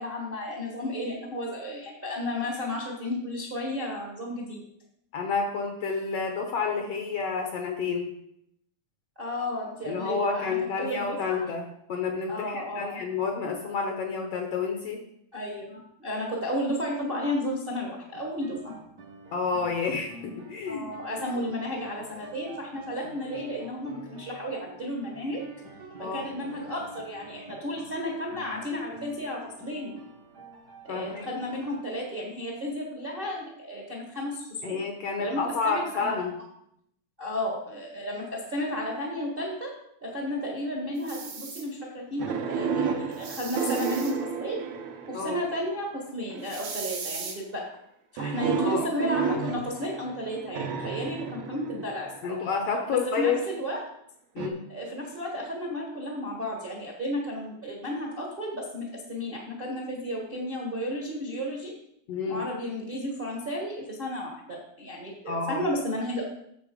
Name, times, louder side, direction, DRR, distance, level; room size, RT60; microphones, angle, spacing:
voice 1, 0.0-4.6 9.2-11.5 12.3-13.0 15.3-18.7 20.7-25.4 26.0-29.9 30.8-34.8 35.2-36.2 37.2-39.7 40.0-44.6 45.1-47.6 48.1-52.4 52.9-53.8 54.7-61.7 62.3-66.2, left 1 dB, 35° right, -1 dB, 0.9 m, -33 dB
voice 2, 5.1-8.1 9.8-11.6 11.9-15.0 19.3-20.9 26.0-26.3 30.9-31.3 34.6-36.4 45.1-45.4 48.6-48.9 52.2-53.4 54.3-54.6 62.1-62.4 65.3-65.6, left 5 dB, 65° left, 3 dB, 1.6 m, -29 dB
sound 1, 18.1-31.8, right 2 dB, 55° right, 1.1 m, -47 dB
sound 2, 41.0-41.6 43.1-44.1 46.4-47.4, right 5 dB, 85° right, 3.3 m, -38 dB
sound 3, 42.2-45.6 46.3-46.8 48.2-52.3 54.4-54.5, right 6 dB, 70° right, 2.0 m, -31 dB
8.4 x 7.0 x 5.0 m, 0.75 s
omnidirectional pair, 3.6 m